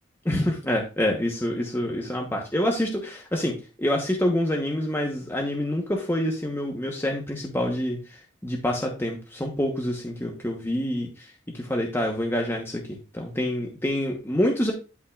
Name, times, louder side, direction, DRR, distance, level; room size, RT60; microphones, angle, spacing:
voice 1, 0.2-14.7, left 1 dB, 10° left, 0 dB, 1.0 m, -27 dB
11.5 x 5.5 x 2.4 m, 0.32 s
head